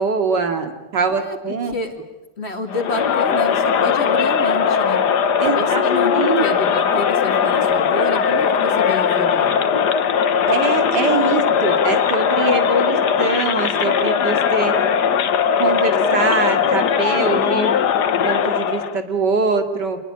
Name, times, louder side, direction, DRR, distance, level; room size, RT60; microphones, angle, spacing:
voice 1, 0.0-1.8 5.4-6.4 10.5-14.7 15.6-20.0, right 4 dB, 80° right, 6 dB, 2.9 m, -23 dB
voice 2, 2.4-5.0 5.5-6.1 6.4-9.5, left 2 dB, 35° left, 5 dB, 2.7 m, -29 dB
Crowd, 2.7-19.0, left 7 dB, 75° left, 1.7 m, -19 dB
27.0 x 21.0 x 8.8 m, 1.0 s
omnidirectional pair, 1.8 m